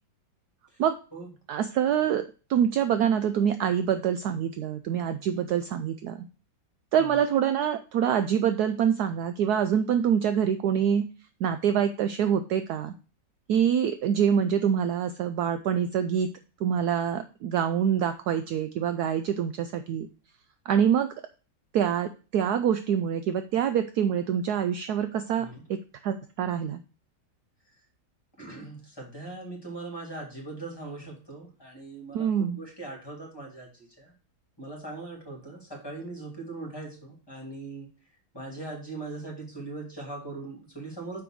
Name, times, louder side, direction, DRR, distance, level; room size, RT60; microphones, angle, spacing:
voice 1, 1.5-2.2 2.5-6.3 6.9-11.1 11.4-12.9 13.5-16.3 16.6-20.1 20.7-21.1 21.7-26.8 32.1-32.6, right 8 dB, 70° right, 9 dB, 1.0 m, -25 dB
voice 2, 28.4-32.3 32.6-34.1 34.6-37.9 38.3-41.2, right 2 dB, 15° left, -1 dB, 2.8 m, -40 dB
6.0 x 5.3 x 6.1 m, 0.35 s
omnidirectional pair, 2.0 m